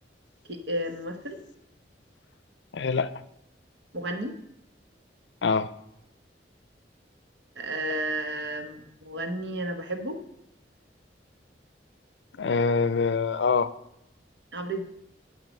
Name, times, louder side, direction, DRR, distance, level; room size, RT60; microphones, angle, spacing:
voice 1, 0.5-1.4 3.9-4.3 7.6-10.2 14.5-14.8, right 1 dB, 80° right, 1.1 m, -32 dB
voice 2, 2.7-3.1 5.4-5.7 12.4-13.7, left 5 dB, 80° left, 0.5 m, -24 dB
9.1 x 5.9 x 5.4 m
head